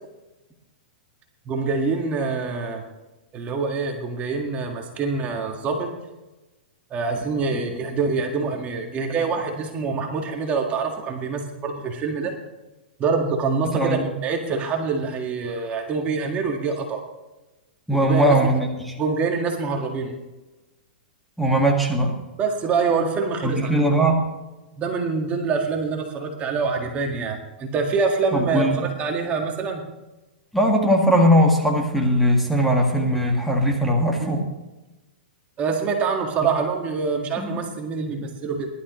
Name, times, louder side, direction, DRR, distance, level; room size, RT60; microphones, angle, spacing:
voice 1, 1.4-2.8 3.3-5.9 6.9-12.3 13.0-17.0 17.9-18.4 19.0-20.1 22.4-23.7 24.8-29.8 34.2-34.4 35.6-38.7, right 4 dB, 25° right, 2 dB, 1.8 m, -25 dB
voice 2, 13.6-14.1 17.9-19.0 21.4-22.2 23.4-24.3 28.3-28.8 30.5-34.4 37.4-37.6, equal, ahead, -2 dB, 1.9 m, -20 dB
20.0 x 12.0 x 3.1 m, 1.1 s
hypercardioid pair, 140°, 5 cm